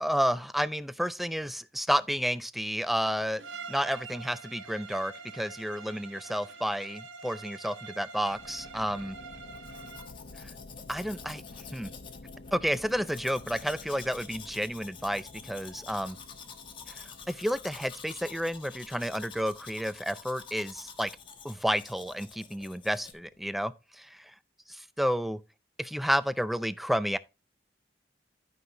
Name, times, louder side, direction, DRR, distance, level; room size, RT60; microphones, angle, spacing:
voice 1, 0.0-3.4 3.7-9.2 10.9-11.4 11.7-11.9 12.5-16.2 17.3-21.1 21.4-24.3 24.7-25.4 25.8-27.2, equal, ahead, 0.4 m, -31 dB
Bowed string instrument, 3.4-10.2, right 4 dB, 85° right, 1.2 m, -45 dB
sound 1, 8.2-23.6, left 2 dB, 55° left, 0.8 m, -51 dB
Domestic sounds home sounds, 9.5-23.1, left 6 dB, 25° left, 1.2 m, -48 dB
12.5 x 5.6 x 2.9 m
head